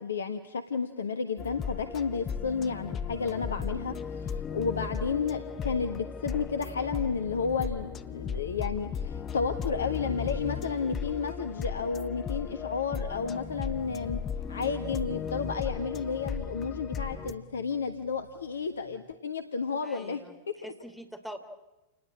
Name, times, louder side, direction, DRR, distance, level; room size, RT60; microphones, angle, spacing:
voice 1, 0.0-14.2 14.5-20.2 20.6-20.7, left 5 dB, 70° left, 9 dB, 1.3 m, -32 dB
sound 1, 1.4-17.3, left 6 dB, 25° left, 1.0 m, -36 dB
sound 2, 16.3-18.9, left 1 dB, 70° right, 4.2 m, -53 dB
voice 2, 19.8-20.4 20.6-21.4, equal, ahead, 5 dB, 3.1 m, -43 dB
29.0 x 19.5 x 8.8 m, 1.0 s
figure-of-eight pair, 90°, 0 cm